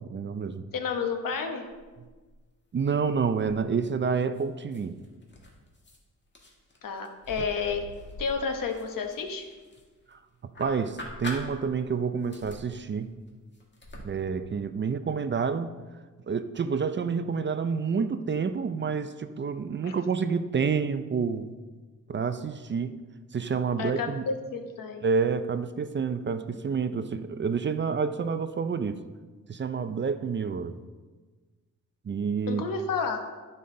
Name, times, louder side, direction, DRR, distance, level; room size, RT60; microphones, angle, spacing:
voice 1, 0.0-0.7 2.7-5.0 10.1-10.2 10.6-13.1 14.0-15.7 16.3-21.5 22.1-22.9 23.3-24.2 25.0-29.0 29.5-30.8 32.0-32.6, right 5 dB, 35° right, 10 dB, 0.5 m, -28 dB
voice 2, 0.7-1.7 6.8-7.9 8.2-9.5 19.8-19.9 23.8-25.0 32.5-33.2, left 5 dB, 80° left, 5 dB, 1.1 m, -31 dB
sound 1, 1.7-2.4 2.7-3.9 4.3-6.0 6.3-10.1 10.5-11.9 12.2-14.1, left 1 dB, 35° left, 1.8 m, -44 dB
12.0 x 5.4 x 3.8 m, 1.3 s
cardioid pair, 90°, 33 cm